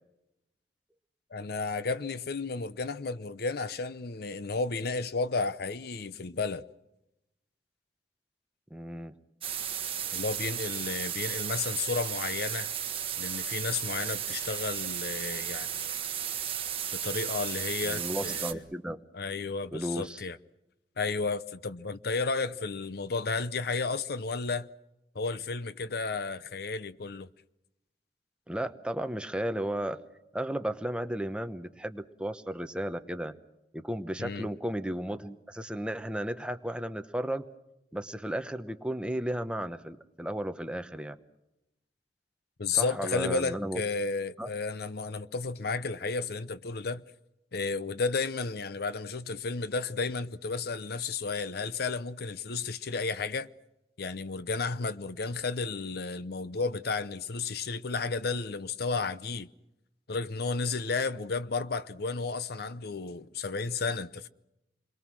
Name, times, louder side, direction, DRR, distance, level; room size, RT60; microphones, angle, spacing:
voice 1, 1.3-6.6 10.1-12.7 13.2-16.0 17.0-18.6 19.1-20.4 21.0-24.7 25.1-27.3 34.2-34.5 42.6-47.0 47.5-53.5 54.0-59.5 60.1-64.3, left 4 dB, 60° left, 0.8 m, -32 dB
voice 2, 8.7-9.1 17.8-19.0 19.7-20.2 28.5-30.0 30.3-33.3 33.7-37.5 37.9-41.2 42.7-43.8 44.4-44.5, right 1 dB, 5° right, 1.0 m, -34 dB
sound 1, 9.4-18.5, right 9 dB, 35° right, 1.5 m, -34 dB
28.5 x 22.5 x 6.3 m
head